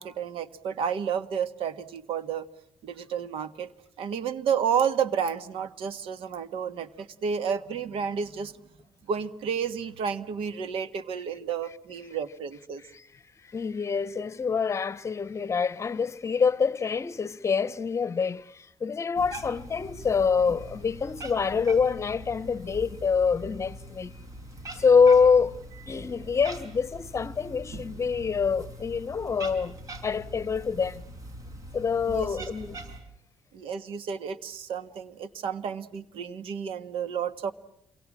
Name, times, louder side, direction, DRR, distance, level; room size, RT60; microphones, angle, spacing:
voice 1, 0.0-2.4 2.8-3.7 4.0-8.5 9.1-12.8 32.1-32.5 33.5-37.5, right 7 dB, 85° right, 1.6 m, -31 dB
voice 2, 13.5-24.1 24.7-29.7 30.0-31.0 31.7-32.8, left 5 dB, 30° left, 1.0 m, -25 dB
Cat, 19.2-33.0, right 1 dB, 40° right, 5.3 m, -42 dB
28.0 x 24.0 x 7.4 m
cardioid pair, 125°, 9 cm